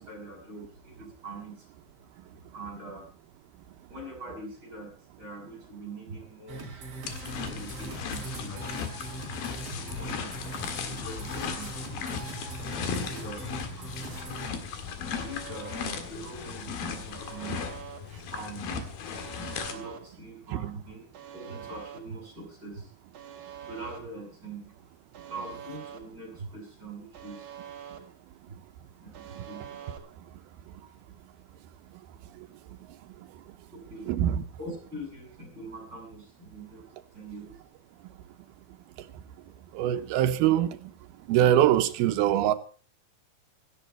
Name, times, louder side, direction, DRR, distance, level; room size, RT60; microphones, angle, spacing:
voice 1, 0.0-1.7 2.5-3.1 3.9-4.9 5.2-6.7 7.4-8.7 9.7-14.0 15.0-17.7 18.0-18.8 19.7-21.0 21.3-22.9 23.6-24.7 25.3-27.5 28.5-28.6 29.0-29.6 30.8-30.9 33.7-34.1 34.6-37.6, right 2 dB, 25° right, 7.4 m, -43 dB
sound 1, 6.5-14.5, right 3 dB, 40° right, 3.9 m, -41 dB
sound 2, 7.1-19.7, left 6 dB, 75° left, 3.6 m, -36 dB
Alarm, 15.1-16.0 17.1-18.0 19.1-20.0 21.1-22.0 23.1-24.0 25.1-26.0 27.1-28.0 29.1-30.0, right 9 dB, 60° right, 3.1 m, -44 dB
voice 2, 34.1-34.4 39.7-40.7 41.3-42.5, right 12 dB, 85° right, 2.9 m, -23 dB
16.5 x 13.5 x 4.6 m
omnidirectional pair, 4.4 m